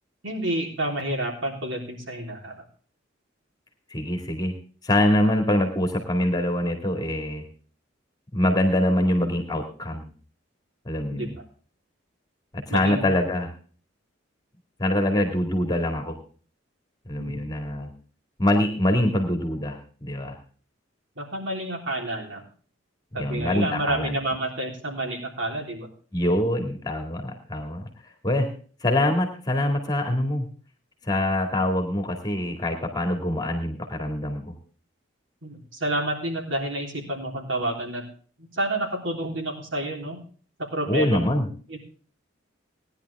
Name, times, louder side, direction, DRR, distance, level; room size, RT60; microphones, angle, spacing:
voice 1, 0.2-2.6 11.1-11.3 12.7-13.1 17.2-17.4 21.2-22.4 23.1-25.9 35.4-38.0 38.4-40.2 40.7-41.2 41.7-41.8, right 1 dB, 70° right, 1 dB, 3.6 m, -29 dB
voice 2, 3.9-4.5 4.8-7.4 8.3-10.1 10.9-11.4 12.5-13.5 14.8-16.2 17.1-17.9 18.4-20.4 23.1-24.2 26.1-28.5 28.8-30.5 31.0-34.4 40.9-41.5, left 1 dB, 20° left, 4 dB, 2.1 m, -24 dB
18.5 x 10.5 x 3.5 m, 0.42 s
head